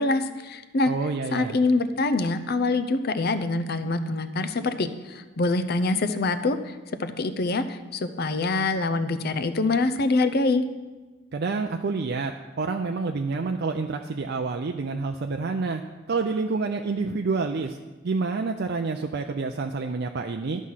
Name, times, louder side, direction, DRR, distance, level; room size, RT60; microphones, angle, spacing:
voice 1, 0.0-0.9 1.3-10.6, left 3 dB, 55° left, 11 dB, 0.6 m, -25 dB
voice 2, 0.9-1.6 11.3-15.8 16.1-17.8 18.0-20.6, right 4 dB, 55° right, 4 dB, 0.5 m, -28 dB
12.0 x 6.2 x 5.6 m, 1.2 s
head